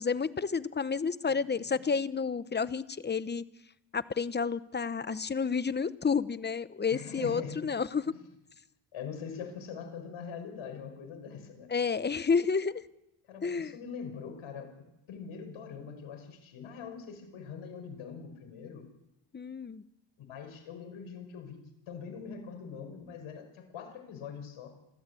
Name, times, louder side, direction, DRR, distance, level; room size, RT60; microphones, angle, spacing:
voice 1, 0.0-3.4 3.9-8.1 11.7-12.8 13.4-13.7 19.3-19.8, left 5 dB, 20° left, 15 dB, 0.9 m, -30 dB
voice 2, 6.9-7.7 8.1-8.2 8.9-11.7 13.3-18.9 20.2-24.7, left 6 dB, 75° left, 5 dB, 6.0 m, -43 dB
28.0 x 13.5 x 8.5 m, 0.88 s
cardioid pair, 105°, 48 cm